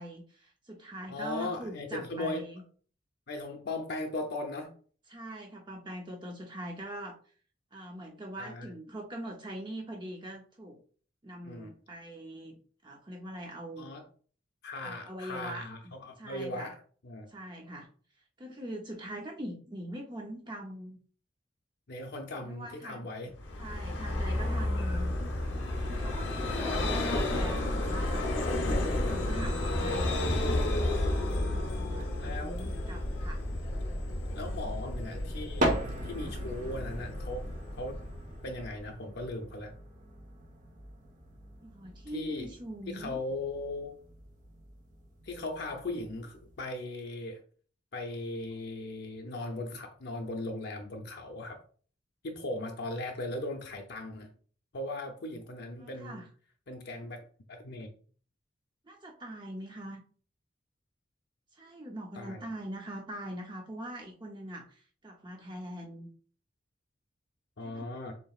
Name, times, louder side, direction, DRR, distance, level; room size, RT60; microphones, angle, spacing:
voice 1, 0.0-2.6 5.1-7.2 7.7-10.8 11.2-13.9 14.8-16.7 17.3-17.9 18.4-21.0 22.4-23.3 23.6-25.1 25.9-30.2 31.5-33.4 41.6-43.2 55.6-56.2 58.8-60.0 61.5-66.1 67.6-67.9, right 1 dB, 25° right, 0 dB, 0.6 m, -42 dB
voice 2, 1.1-2.5 3.3-4.7 8.4-8.7 11.4-11.7 13.8-14.0 14.6-16.7 17.0-17.3 21.9-23.3 26.7-26.9 28.6-28.8 32.2-32.7 34.3-35.7 36.0-37.5 37.8-38.0 38.4-39.7 42.1-42.5 42.9-44.0 45.2-47.4 47.9-51.6 52.2-54.3 54.7-56.2 56.7-57.2 57.5-57.9 62.2-62.5 67.6-68.2, left 2 dB, 60° left, 3 dB, 0.7 m, -38 dB
Vehicle, 23.4-38.8, left 1 dB, 90° left, 0.9 m, -32 dB
sound 1, 32.2-32.3 33.1-34.0 35.1-35.2 35.3-46.6, right 1 dB, 45° right, 1.1 m, -39 dB
7.0 x 2.9 x 2.4 m, 0.43 s
head